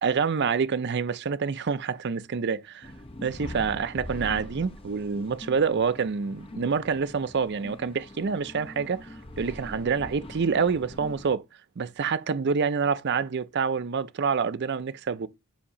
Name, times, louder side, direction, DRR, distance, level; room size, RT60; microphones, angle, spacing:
voice 1, 0.0-2.9 3.2-11.4 11.8-15.3, right 5 dB, 50° right, 0.5 m, -27 dB
sound 1, 2.8-11.3, left 1 dB, 25° left, 0.7 m, -42 dB
7.1 x 2.8 x 5.5 m
head